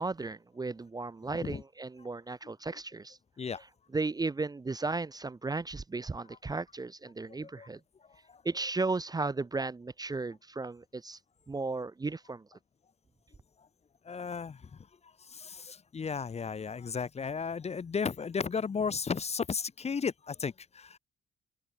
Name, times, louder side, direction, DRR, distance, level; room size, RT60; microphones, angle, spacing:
voice 1, 0.0-3.2 3.9-7.8 8.4-11.2 11.5-12.5, right 3 dB, 20° right, 0.7 m, -35 dB
voice 2, 14.0-14.8 15.2-21.0, left 5 dB, 35° left, 0.9 m, -34 dB
open air
cardioid pair, 90°, 20 cm